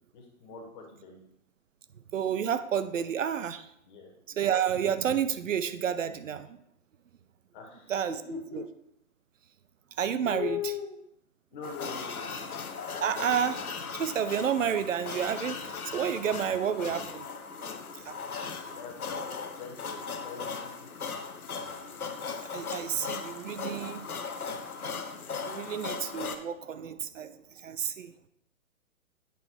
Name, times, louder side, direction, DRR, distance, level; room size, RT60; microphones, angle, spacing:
voice 1, 0.1-1.2 3.9-4.1 7.5-8.6 10.2-11.0 11.5-12.5 18.4-20.0 20.2-20.9, left 7 dB, 35° left, 0 dB, 1.7 m, -40 dB
voice 2, 2.1-3.7 4.4-6.6 7.9-8.2 8.5-8.6 10.0-10.6 13.0-13.7 13.9-17.3 18.0-18.2 22.4-24.3 25.4-27.3 27.6-28.1, right 8 dB, 65° right, 13 dB, 0.6 m, -30 dB
sound 1, 11.6-26.4, left 5 dB, 85° left, 0.8 m, -38 dB
8.4 x 3.9 x 4.4 m, 0.74 s
figure-of-eight pair, 130°, 42 cm